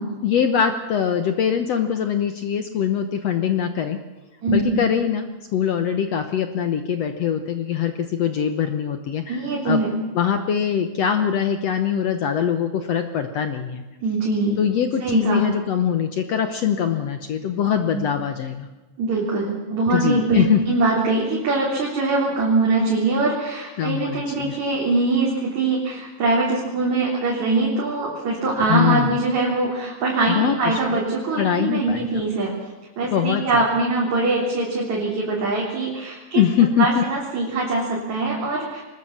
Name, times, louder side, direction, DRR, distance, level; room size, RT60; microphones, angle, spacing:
voice 1, 0.2-4.0 4.5-9.8 10.1-13.8 14.6-18.7 19.9-20.6 23.8-24.6 28.7-29.2 30.3-30.8 31.4-32.0 33.1-33.6 36.3-37.0, left 8 dB, 70° left, 8 dB, 1.5 m, -22 dB
voice 2, 4.4-4.8 9.3-9.9 14.0-14.6 15.0-15.4 17.9-18.1 19.0-32.5 33.0-36.4 36.8-38.8, right 3 dB, 50° right, -3 dB, 4.6 m, -22 dB
23.5 x 20.0 x 7.2 m, 1.1 s
omnidirectional pair, 4.3 m